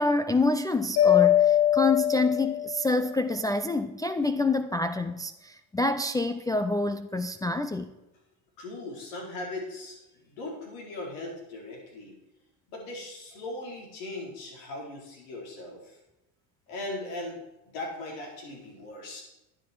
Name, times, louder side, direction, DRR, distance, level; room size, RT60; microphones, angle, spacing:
voice 1, 0.0-7.9, left 2 dB, 10° left, 6 dB, 0.3 m, -27 dB
Mallet percussion, 1.0-3.0, left 11 dB, 55° left, 2.5 m, -22 dB
voice 2, 8.6-12.1 12.7-16.0 16.7-17.4 17.7-19.2, left 2 dB, 70° left, -1 dB, 4.8 m, -39 dB
11.5 x 9.9 x 4.7 m, 0.97 s
supercardioid pair, 110°, 46 cm